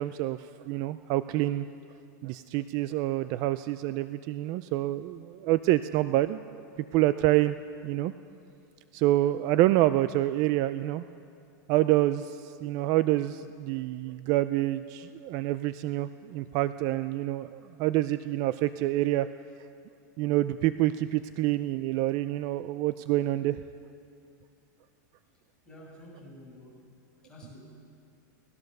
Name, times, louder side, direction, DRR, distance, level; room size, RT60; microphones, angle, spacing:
voice 1, 0.0-1.7 2.2-6.6 6.9-7.6 7.8-8.1 8.9-11.0 11.7-19.3 20.2-23.6, right 15 dB, 40° right, 13 dB, 0.4 m, -27 dB
voice 2, 25.7-26.9 27.2-27.6, left 1 dB, 10° left, -5 dB, 6.7 m, -49 dB
24.0 x 18.5 x 6.6 m, 2.5 s
supercardioid pair, 160°, 10 cm